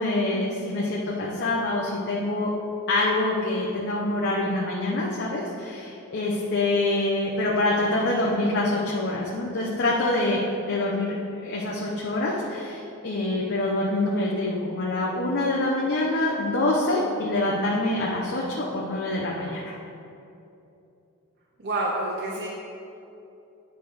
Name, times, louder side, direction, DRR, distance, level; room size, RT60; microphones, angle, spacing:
voice 1, 0.0-2.5 2.9-19.7, left 2 dB, 50° left, -4 dB, 0.9 m, -25 dB
voice 2, 21.6-22.5, right 2 dB, 50° right, -4 dB, 0.8 m, -28 dB
10.0 x 3.5 x 6.3 m, 2.8 s
head